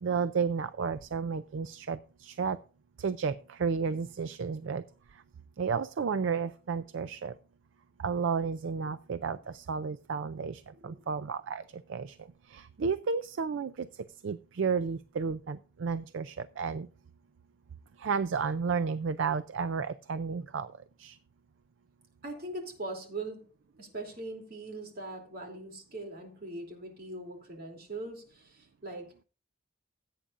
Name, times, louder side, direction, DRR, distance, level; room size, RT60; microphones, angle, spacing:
voice 1, 0.0-2.6 3.0-4.8 5.1-5.2 5.6-7.3 8.0-12.2 12.5-16.9 18.0-20.7 21.0-21.2, right 5 dB, 65° right, 14 dB, 0.4 m, -32 dB
voice 2, 10.7-11.1 22.2-23.5 23.8-29.2, right 2 dB, 50° right, 1 dB, 2.9 m, -41 dB
16.0 x 8.6 x 2.5 m, 0.36 s
head